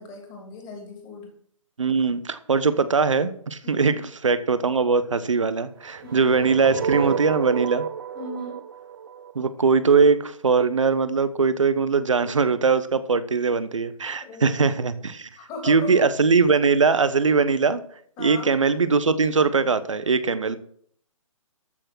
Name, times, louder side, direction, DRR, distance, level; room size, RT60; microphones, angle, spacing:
voice 1, 0.0-1.3 3.6-4.0 6.0-6.4 8.1-8.6 14.2-14.7 15.4-16.1 18.2-18.5, left 1 dB, 20° left, 3 dB, 3.0 m, -38 dB
voice 2, 1.8-4.0 4.2-7.9 9.3-15.3 15.6-17.8 18.2-20.6, right 5 dB, 65° right, 13 dB, 1.1 m, -21 dB
sound 1, 5.9-10.0, right 8 dB, 45° right, 0.8 m, -31 dB
13.5 x 6.6 x 6.0 m, 0.63 s
figure-of-eight pair, 130°, 18 cm